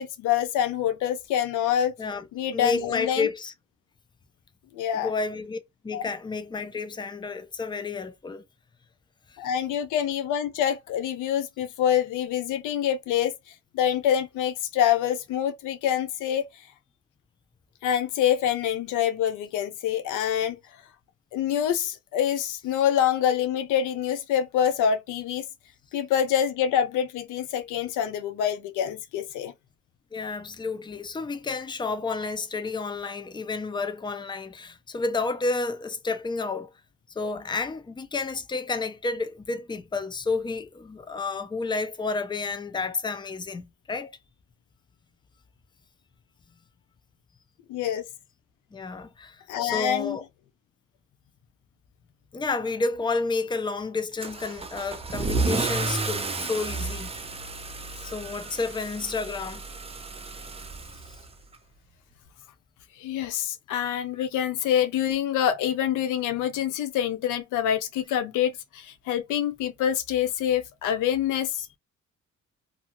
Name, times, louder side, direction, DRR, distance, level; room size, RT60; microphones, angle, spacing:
voice 1, 0.0-1.9 2.3-3.3 4.7-5.1 5.9-6.1 9.4-13.3 13.7-16.5 17.8-20.6 21.3-25.5 25.9-29.5 47.7-48.1 49.5-50.2 63.0-71.8, left 9 dB, 90° left, 0.6 m, -26 dB
voice 2, 2.5-3.5 4.9-8.4 30.1-36.7 37.2-44.1 48.7-50.2 52.3-57.1 58.0-59.6, left 3 dB, 15° left, 0.5 m, -30 dB
Car / Engine starting / Accelerating revving vroom, 54.2-61.5, right 3 dB, 20° right, 0.6 m, -32 dB
2.7 x 2.3 x 2.9 m
cardioid pair, 90°, 30 cm